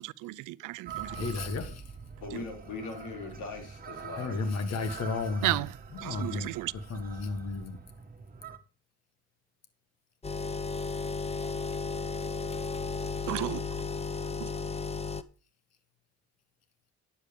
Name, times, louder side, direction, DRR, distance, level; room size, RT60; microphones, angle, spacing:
voice 1, 0.2-1.3 5.4-5.7 6.0-6.7 13.3-13.7 14.4-14.5, right 18 dB, 90° right, 0.5 m, -33 dB
sound 1, 0.9-8.6, right 6 dB, 30° right, 1.7 m, -44 dB
voice 2, 1.0-1.8 4.1-5.6 5.9-6.5 6.9-7.8, left 3 dB, 60° left, 1.9 m, -33 dB
voice 3, 2.2-4.4, left 4 dB, 75° left, 3.9 m, -40 dB
sound 2, 10.2-15.2, left 4 dB, 20° left, 0.8 m, -34 dB
10.5 x 8.1 x 5.2 m
cardioid pair, 90°, 30 cm